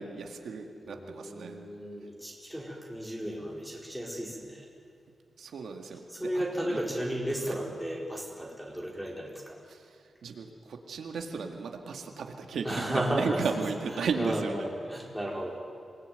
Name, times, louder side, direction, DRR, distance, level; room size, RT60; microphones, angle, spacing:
voice 1, 0.0-1.6 5.4-6.8 7.5-7.6 9.7-9.9 10.2-14.7, right 5 dB, 90° right, 3 dB, 2.1 m, -35 dB
voice 2, 0.8-4.7 6.1-9.6 12.6-13.4 14.0-15.6, right 1 dB, ahead, -2 dB, 4.2 m, -34 dB
26.5 x 19.5 x 9.3 m, 2.3 s
wide cardioid pair, 165°, 0 cm